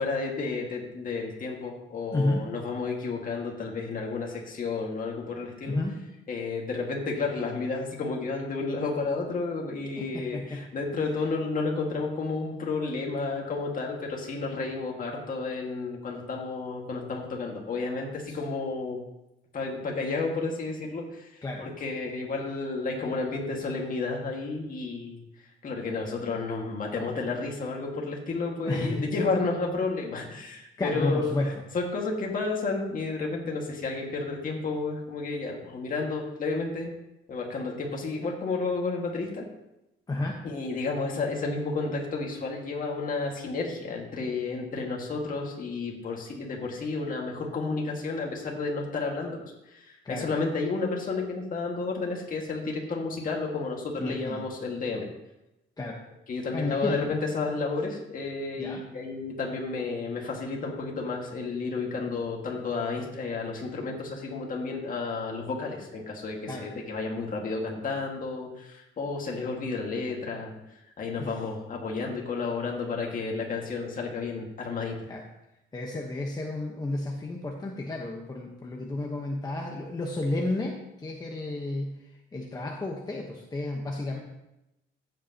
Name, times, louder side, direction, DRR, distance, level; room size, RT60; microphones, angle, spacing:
voice 1, 0.0-5.8 6.3-19.0 19.5-25.2 25.6-36.9 37.3-39.4 40.4-55.1 56.3-70.5 71.0-75.0, left 3 dB, 40° left, -1 dB, 1.9 m, -31 dB
voice 2, 2.1-2.4 5.7-6.0 10.0-10.6 18.3-18.4 21.4-21.7 28.6-29.0 30.8-31.5 40.1-40.4 50.0-50.3 54.0-54.4 55.8-56.0 56.5-57.2 58.6-58.8 66.5-66.7 71.2-71.3 75.1-75.2 75.7-81.9 82.3-84.2, left 2 dB, 20° left, -1 dB, 1.1 m, -31 dB
15.0 x 8.0 x 2.9 m, 0.91 s
cardioid pair, 140°, 21 cm